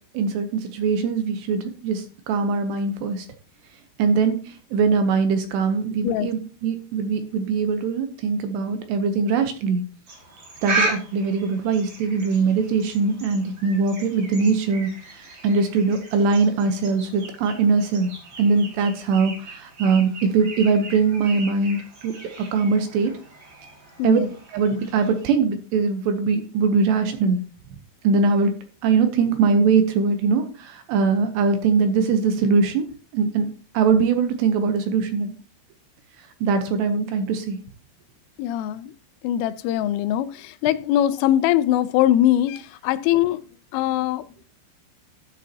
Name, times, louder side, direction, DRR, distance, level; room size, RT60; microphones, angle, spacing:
voice 1, 0.1-3.3 4.0-9.8 10.6-18.1 18.4-21.8 22.0-22.1 22.5-23.1 24.0-24.2 24.5-27.4 28.0-28.5 28.8-32.9 33.1-33.5 33.7-35.3 36.4-37.6, right 5 dB, 75° right, 2.7 m, -21 dB
sound 1, 10.1-25.3, right 2 dB, 40° right, 1.7 m, -35 dB
voice 2, 24.0-24.3 38.4-38.9 39.2-43.4 43.7-44.5, left 12 dB, 90° left, 3.2 m, -22 dB
12.5 x 8.2 x 2.8 m
omnidirectional pair, 5.6 m